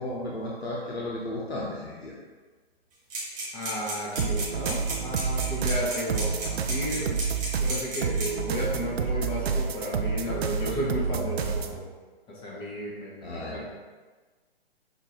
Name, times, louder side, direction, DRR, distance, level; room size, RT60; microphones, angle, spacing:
voice 1, 0.0-2.2 13.2-13.6, left 1 dB, 85° left, -5 dB, 0.9 m, -34 dB
sound 1, 3.1-8.4, right 2 dB, 10° right, 0.3 m, -34 dB
voice 2, 3.5-7.2 7.6-11.9 12.3-13.6, equal, 15° left, -5 dB, 1.1 m, -33 dB
sound 2, 4.2-11.8, right 5 dB, 75° right, 0.5 m, -29 dB
6.0 x 2.8 x 3.0 m, 1.4 s
figure-of-eight pair, 130°, 31 cm